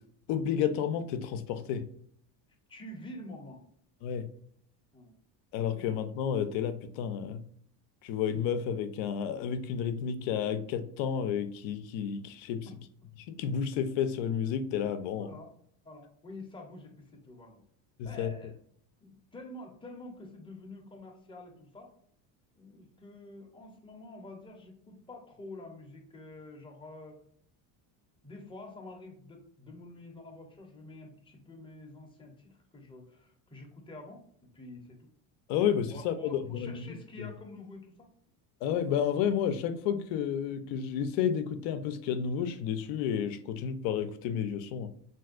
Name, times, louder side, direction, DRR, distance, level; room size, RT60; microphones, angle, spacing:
voice 1, 0.3-1.8 4.0-4.3 5.5-7.4 8.0-12.7 13.3-15.4 18.0-18.3 35.5-37.3 38.6-44.9, left 8 dB, 70° left, 10 dB, 0.6 m, -31 dB
voice 2, 2.7-3.6 4.9-5.1 5.8-5.9 12.6-12.7 15.1-15.5 15.8-17.6 18.0-18.6 19.0-21.9 22.6-27.2 28.2-35.1 35.9-38.1, left 2 dB, 10° left, 1 dB, 0.6 m, -48 dB
3.4 x 2.6 x 2.4 m, 0.65 s
supercardioid pair, 110°, 48 cm